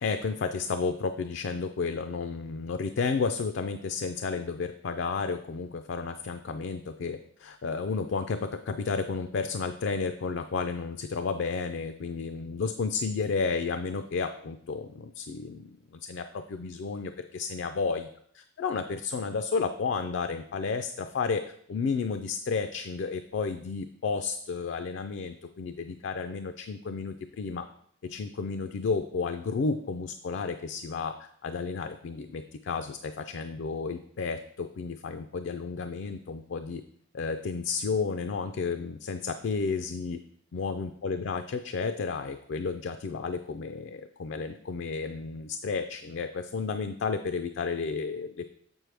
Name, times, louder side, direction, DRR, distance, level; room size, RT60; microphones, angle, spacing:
voice 1, 0.0-15.8 16.0-18.1 18.6-21.4 21.7-27.7 28.0-36.8 37.1-40.2 40.5-48.5, left 4 dB, 65° left, 8 dB, 0.4 m, -32 dB
7.3 x 6.2 x 3.3 m, 0.65 s
head